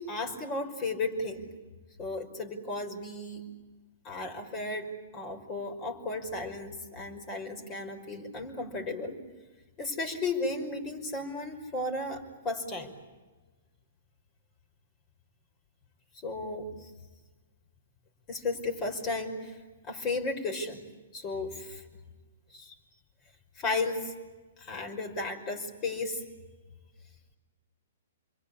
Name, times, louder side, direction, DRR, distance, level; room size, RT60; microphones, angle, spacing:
voice 1, 0.0-1.4 2.0-3.4 4.0-9.1 9.8-12.9 16.2-16.9 18.3-19.6 19.9-20.8 21.1-21.8 22.5-22.8 23.6-24.1 24.6-26.2, left 3 dB, 30° left, 5 dB, 5.6 m, -34 dB
29.0 x 23.0 x 8.6 m, 1.3 s
figure-of-eight pair, 120°, 0 cm